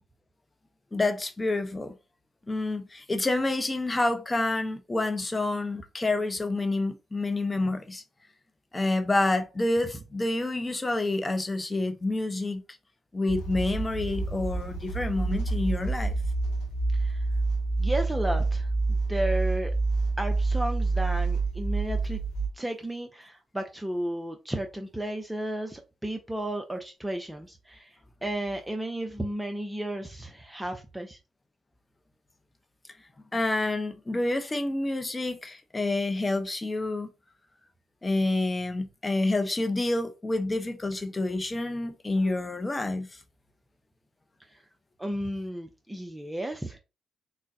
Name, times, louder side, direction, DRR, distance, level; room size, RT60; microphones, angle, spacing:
voice 1, 0.9-1.9 2.5-8.0 8.7-12.6 13.1-16.1 33.3-37.1 38.0-43.2, left 2 dB, 25° left, 0.7 m, -28 dB
sound 1, 13.3-22.5, right 3 dB, 85° left, 0.6 m, -28 dB
voice 2, 16.9-17.2 17.8-19.7 20.2-22.2 22.5-31.2 44.5-44.6 45.0-46.8, right 1 dB, 10° right, 0.6 m, -33 dB
3.8 x 2.1 x 2.6 m
hypercardioid pair, 50°, 0 cm